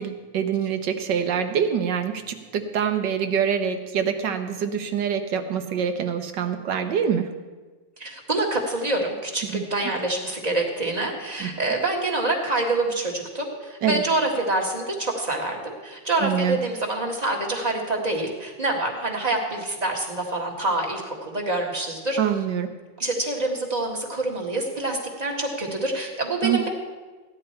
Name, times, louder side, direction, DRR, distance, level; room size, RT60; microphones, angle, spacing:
voice 1, 0.0-7.3 9.4-9.6 11.4-11.5 13.8-14.0 16.2-16.6 22.2-22.7 26.4-26.7, right 8 dB, 70° right, 7 dB, 1.5 m, -25 dB
voice 2, 8.0-22.2 23.0-26.7, right 2 dB, 20° right, 0 dB, 1.7 m, -26 dB
15.5 x 10.5 x 4.4 m, 1.3 s
omnidirectional pair, 2.1 m